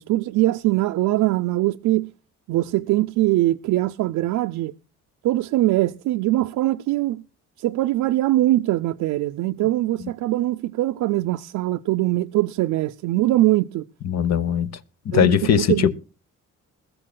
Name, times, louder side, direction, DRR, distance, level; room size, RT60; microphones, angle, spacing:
voice 1, 0.0-2.1 2.5-4.7 5.2-7.2 7.6-13.9 15.1-15.9, right 16 dB, 80° right, 0.5 m, -22 dB
voice 2, 14.0-14.8 15.0-15.9, left 8 dB, 60° left, 1.0 m, -20 dB
21.0 x 14.5 x 2.2 m
cardioid pair, 90°, 30 cm